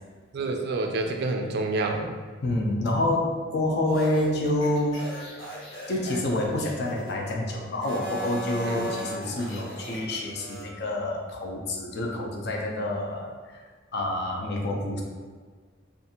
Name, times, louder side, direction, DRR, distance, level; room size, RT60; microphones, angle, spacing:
voice 1, 0.3-2.1 8.7-8.9, right 2 dB, 55° right, 3 dB, 0.3 m, -28 dB
voice 2, 2.4-5.0 5.9-13.6 13.9-15.0, left 1 dB, 55° left, 0 dB, 0.4 m, -28 dB
sound 1, 3.9-7.4 7.8-10.7, equal, 80° left, 0.9 m, -38 dB
2.6 x 2.4 x 2.7 m, 1.5 s
head